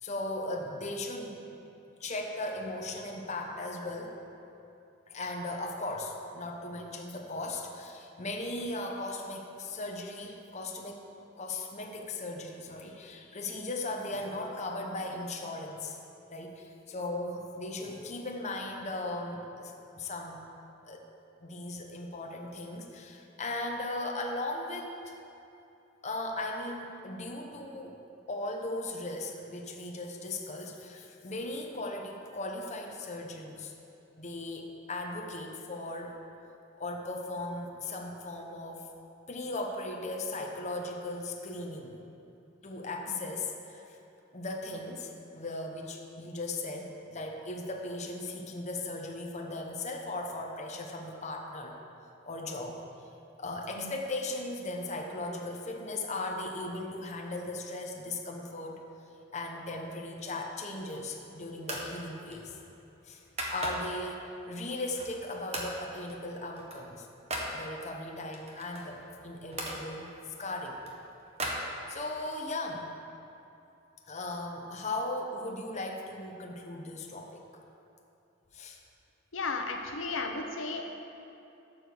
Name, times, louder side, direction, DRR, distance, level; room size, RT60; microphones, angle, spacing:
voice 1, 0.0-1.6 2.0-4.1 5.1-11.1 11.4-16.0 16.3-20.4 20.8-21.1 21.4-25.2 26.0-28.0 28.3-33.7 34.2-36.2 36.8-38.9 39.3-42.0 42.6-44.0 44.3-51.8 52.2-52.8 53.4-58.8 59.3-62.6 63.0-63.2 63.5-67.1 67.5-70.1 70.4-70.8 71.9-73.0 74.1-77.4 78.5-78.8, left 2 dB, 35° left, 1 dB, 0.9 m, -37 dB
sound 1, 60.6-61.2 61.6-61.9 62.3-64.1 64.5-65.2 65.5-65.8 66.1-67.5 68.3-69.8 70.4-72.2, right 1 dB, 35° right, 1.3 m, -39 dB
voice 2, 79.3-80.9, left 3 dB, 80° left, 3 dB, 0.8 m, -34 dB
11.5 x 4.8 x 7.0 m, 2.8 s
head